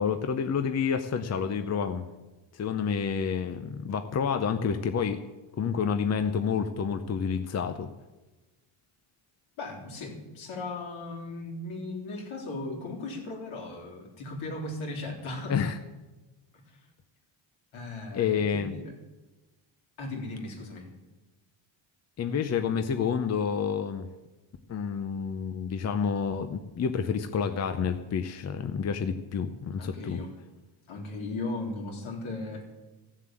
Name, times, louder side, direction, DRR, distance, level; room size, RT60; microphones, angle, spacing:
voice 1, 0.0-2.0 2.5-5.2 5.6-7.9 15.5-15.8 18.1-18.8 22.2-24.1 24.7-30.2, left 6 dB, 30° left, 8 dB, 0.7 m, -29 dB
voice 2, 9.6-15.6 16.5-16.8 17.7-18.9 20.0-20.9 29.8-30.3 30.9-32.6, left 2 dB, 70° left, 0 dB, 3.6 m, -37 dB
15.0 x 7.4 x 7.6 m, 1.1 s
cardioid pair, 120°, 50 cm